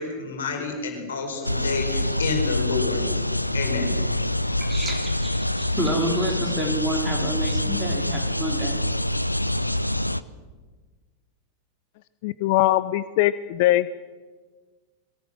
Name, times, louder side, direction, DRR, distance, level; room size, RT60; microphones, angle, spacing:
voice 1, 0.0-3.0 3.5-3.9, left 5 dB, 65° left, 4.7 m, -29 dB
sound 1, 1.4-10.2, left 1 dB, 90° left, 0.6 m, -25 dB
voice 2, 4.6-8.8, right 1 dB, 10° right, 4.5 m, -29 dB
voice 3, 12.2-13.9, left 15 dB, 50° left, 0.6 m, -21 dB
21.5 x 18.5 x 7.8 m
figure-of-eight pair, 90°, 0 cm